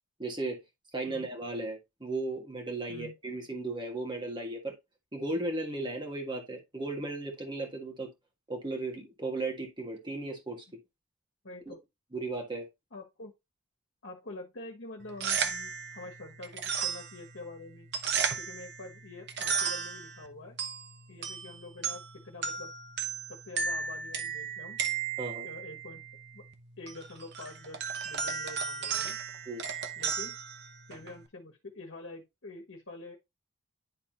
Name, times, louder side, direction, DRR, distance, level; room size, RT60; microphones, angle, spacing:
voice 1, 0.2-0.6 0.9-4.7 5.1-8.1 8.5-10.8 11.7-11.8 12.1-12.7 25.2-25.5 29.5-29.6, right 2 dB, 20° right, 1.7 m, -36 dB
voice 2, 11.4-11.8 12.9-13.3 14.0-17.9 18.4-20.6 21.1-22.7 23.3-24.8 25.4-26.0 26.3-26.4 26.8-29.2 30.0-30.4 30.9-33.2, left 2 dB, 65° left, 1.4 m, -46 dB
sound 1, 15.0-31.2, right 6 dB, 55° right, 0.9 m, -35 dB
10.5 x 3.6 x 2.9 m
head